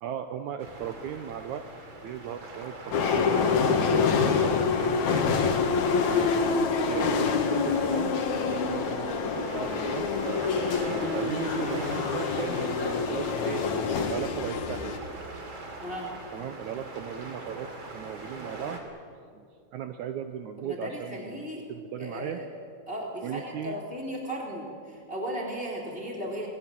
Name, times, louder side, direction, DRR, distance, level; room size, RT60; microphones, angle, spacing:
voice 1, 0.0-1.7 2.0-5.4 6.0-10.5 10.8-13.7 14.1-15.0 16.3-18.8 19.3-19.5 19.7-21.4 21.7-22.4 23.2-23.8, right 9 dB, 75° right, 8 dB, 2.2 m, -37 dB
sound 1, 0.6-18.8, right 2 dB, 40° right, 3.3 m, -41 dB
sound 2, 2.9-15.0, left 5 dB, 65° left, 2.9 m, -26 dB
voice 2, 15.8-16.1 20.6-21.6 22.0-22.5 22.9-26.5, equal, 15° left, -1 dB, 3.1 m, -36 dB
27.0 x 20.0 x 7.6 m, 2.2 s
omnidirectional pair, 3.6 m